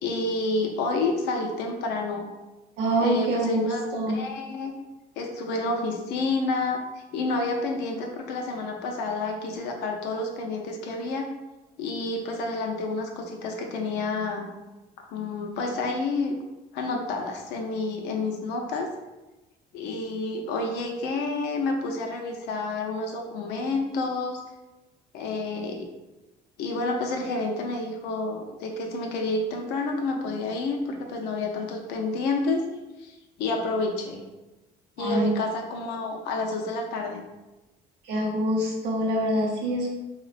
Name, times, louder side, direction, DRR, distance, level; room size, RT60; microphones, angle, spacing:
voice 1, 0.0-2.3 3.0-4.7 5.2-6.8 7.1-11.3 11.8-14.5 15.0-16.4 16.7-18.9 19.7-24.4 25.1-25.9 26.6-32.6 33.0-34.2 35.0-37.2, left 3 dB, 85° left, 2 dB, 0.5 m, -29 dB
voice 2, 2.8-4.2 35.0-35.3 38.0-39.9, right 1 dB, 85° right, -2 dB, 0.7 m, -25 dB
3.7 x 2.1 x 2.4 m, 1.1 s
cardioid pair, 110°, 17 cm